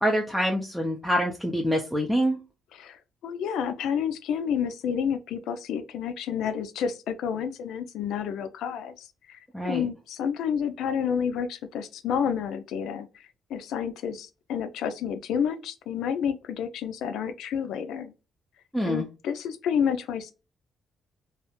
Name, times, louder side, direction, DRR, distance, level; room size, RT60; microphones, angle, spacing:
voice 1, 0.0-2.4 9.5-9.9 18.7-19.1, equal, ahead, 0.4 m, -25 dB
voice 2, 2.8-18.1 18.8-20.3, left 7 dB, 80° left, 0.3 m, -30 dB
2.3 x 2.0 x 2.9 m
cardioid pair, 90°, 0 cm